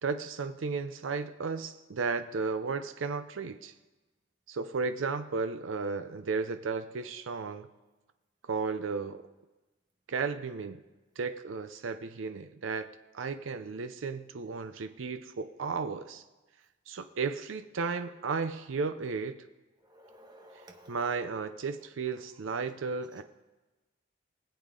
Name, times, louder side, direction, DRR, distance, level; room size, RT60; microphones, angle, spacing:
voice 1, 0.0-3.7 4.5-7.7 8.5-9.2 10.1-10.8 11.2-12.9 13.1-16.2 16.9-19.5 20.9-23.2, right 4 dB, 90° right, 10 dB, 0.5 m, -34 dB
voice 2, 19.8-21.0, equal, 20° right, 3 dB, 1.3 m, -54 dB
19.0 x 8.3 x 3.7 m, 1.1 s
head